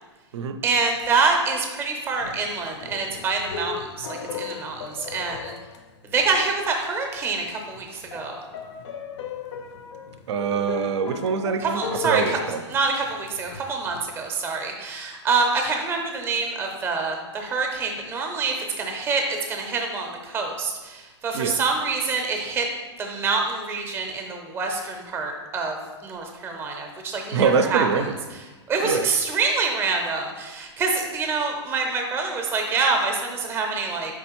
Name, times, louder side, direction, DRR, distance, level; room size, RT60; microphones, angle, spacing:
voice 1, 0.6-5.5 6.1-8.4 11.6-12.4 12.7-22.7 23.0-27.9 28.7-34.2, right 4 dB, 15° right, 3 dB, 0.5 m, -26 dB
sound 1, 2.2-6.5 6.9-7.0 7.4-14.0, left 7 dB, 70° left, 0.5 m, -37 dB
voice 2, 10.3-12.6 21.3-21.6 27.3-28.1 28.8-29.1, right 6 dB, 70° right, 10 dB, 0.4 m, -24 dB
4.7 x 3.4 x 2.9 m, 1.2 s
hypercardioid pair, 140°, 15 cm